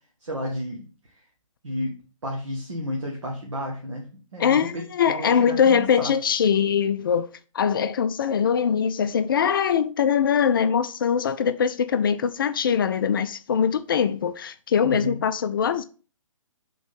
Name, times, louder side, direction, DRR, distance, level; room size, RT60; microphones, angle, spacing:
voice 1, 0.2-0.8 1.6-1.9 2.2-6.1 14.8-15.2, equal, 60° right, 1.6 m, -32 dB
voice 2, 4.4-7.3 7.5-15.8, left 7 dB, 40° left, 0.4 m, -22 dB
6.0 x 3.9 x 5.3 m
figure-of-eight pair, 130°, 17 cm